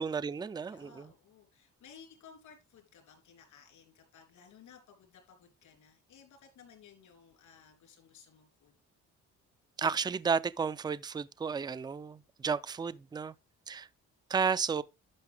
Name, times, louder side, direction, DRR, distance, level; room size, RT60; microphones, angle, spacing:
voice 1, 0.0-1.1 9.8-13.3 13.7-13.9 14.3-14.8, right 6 dB, 15° right, 0.4 m, -32 dB
voice 2, 0.7-8.8, left 6 dB, 75° left, 3.3 m, -57 dB
11.0 x 5.5 x 3.4 m
cardioid pair, 90°, 30 cm